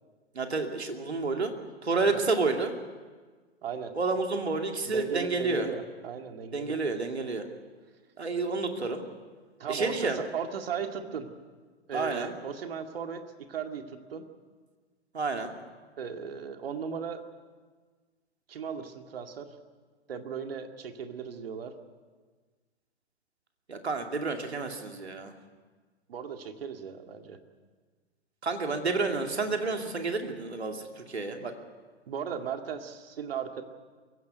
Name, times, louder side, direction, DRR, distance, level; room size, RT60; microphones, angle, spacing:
voice 1, 0.3-1.5 1.8-2.7 3.9-5.7 6.5-7.5 8.2-9.0 9.7-10.2 11.9-12.3 15.1-15.5 23.7-25.3 28.4-31.5, right 3 dB, 80° right, 4 dB, 2.7 m, -30 dB
voice 2, 3.6-3.9 4.9-6.8 9.6-11.3 11.9-13.2 13.5-14.2 16.0-17.2 18.5-19.5 20.1-21.7 26.1-27.4 32.1-33.6, right 7 dB, 60° right, 6 dB, 2.2 m, -36 dB
23.0 x 16.0 x 9.3 m, 1.4 s
figure-of-eight pair, 110°, 32 cm